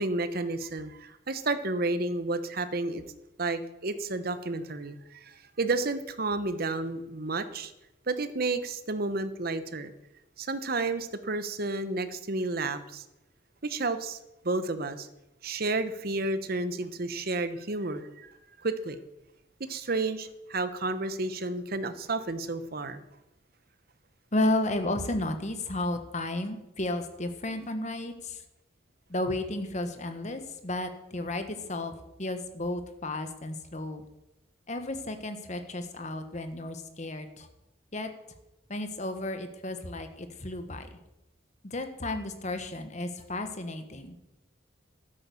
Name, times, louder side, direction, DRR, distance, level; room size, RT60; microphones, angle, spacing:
voice 1, 0.0-3.0 3.4-7.7 8.1-9.9 10.4-13.0 13.6-14.2 14.4-15.1 15.4-18.3 18.6-19.0 19.7-23.0, right 2 dB, 50° right, 11 dB, 1.0 m, -31 dB
voice 2, 24.3-28.4 29.1-34.0 34.7-37.5 37.9-38.1 38.7-40.9 41.6-44.1, left 1 dB, 40° left, 8 dB, 1.3 m, -33 dB
12.0 x 9.4 x 7.0 m, 0.93 s
head